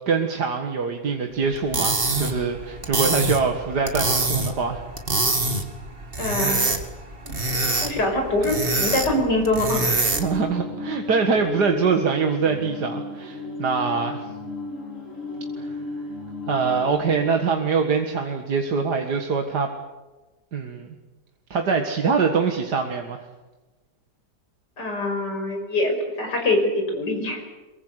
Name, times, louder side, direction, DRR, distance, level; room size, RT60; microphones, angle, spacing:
voice 1, 0.1-4.8 10.2-14.3 15.6-15.8 16.5-19.7 20.5-20.9 21.5-23.3, right 5 dB, 75° right, 4 dB, 2.3 m, -24 dB
sound 1, 1.5-10.4, right 2 dB, 35° right, 2.6 m, -25 dB
voice 2, 6.2-6.6 7.2-7.4 7.8-9.9 24.8-27.4, left 2 dB, 85° left, 2 dB, 6.2 m, -24 dB
sound 2, 10.1-17.3, left 2 dB, 45° left, 4.5 m, -34 dB
23.5 x 22.5 x 8.2 m, 1.2 s
omnidirectional pair, 1.8 m